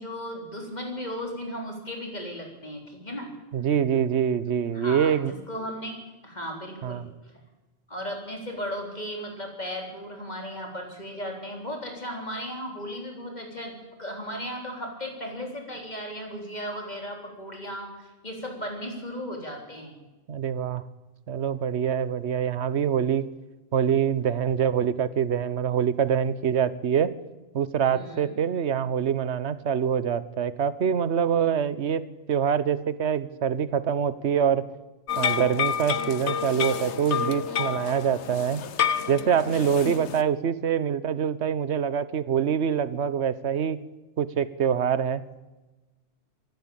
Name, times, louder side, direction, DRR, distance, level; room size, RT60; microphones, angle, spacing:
voice 1, 0.0-3.3 4.7-7.3 7.9-13.7 14.0-19.9 27.9-28.3 40.0-40.1, equal, 40° left, 2 dB, 4.1 m, -36 dB
voice 2, 3.5-5.3 6.8-7.1 20.3-20.8 21.3-23.3 23.7-27.1 27.5-32.0 32.3-34.7 35.2-38.6 39.1-43.8 44.2-45.2, right 8 dB, 80° right, 16 dB, 1.2 m, -25 dB
sound 1, 35.1-40.2, left 8 dB, 90° left, 1.2 m, -29 dB
25.0 x 11.5 x 8.8 m, 1.1 s
omnidirectional pair, 1.1 m